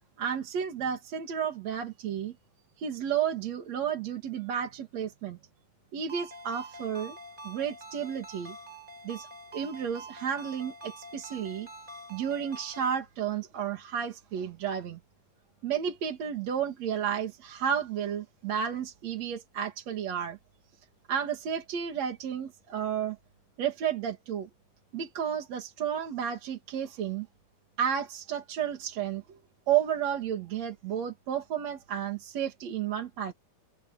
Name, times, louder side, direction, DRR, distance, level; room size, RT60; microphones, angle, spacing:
voice 1, 0.2-2.3 2.8-5.4 5.9-7.2 7.4-8.6 9.0-11.7 12.1-15.0 15.6-20.4 21.1-23.2 23.6-24.5 24.9-27.3 27.8-29.2 29.7-33.3, right 8 dB, 55° right, 3.1 m, -32 dB
Ringtone, 6.1-13.0, right 1 dB, 15° right, 4.6 m, -46 dB
omnidirectional pair, 3.8 m